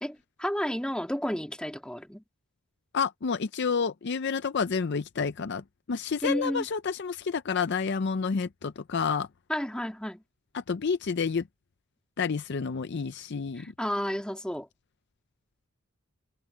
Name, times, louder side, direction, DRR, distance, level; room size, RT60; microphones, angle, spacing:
voice 1, 0.0-2.2 6.2-6.7 9.5-10.2 13.6-14.7, equal, 5° left, 2.7 m, -31 dB
voice 2, 2.9-9.3 10.5-11.4 12.2-13.7, left 5 dB, 50° left, 0.5 m, -29 dB
head